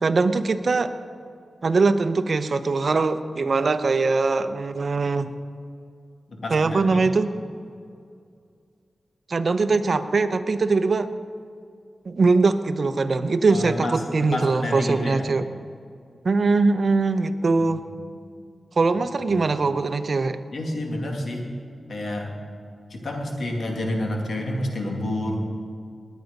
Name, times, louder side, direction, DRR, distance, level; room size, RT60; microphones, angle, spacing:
voice 1, 0.0-0.9 1.6-5.3 6.5-7.3 9.3-11.1 12.1-15.4 16.2-17.8 18.8-20.4, right 3 dB, 55° right, 10 dB, 0.8 m, -21 dB
voice 2, 6.3-7.0 13.5-13.9 14.2-15.2 17.6-17.7 19.3-19.4 20.5-21.5 21.9-22.3 22.9-25.4, left 1 dB, 70° left, 1 dB, 2.4 m, -29 dB
20.0 x 9.3 x 5.3 m, 2.4 s
wide cardioid pair, 75°, 0 cm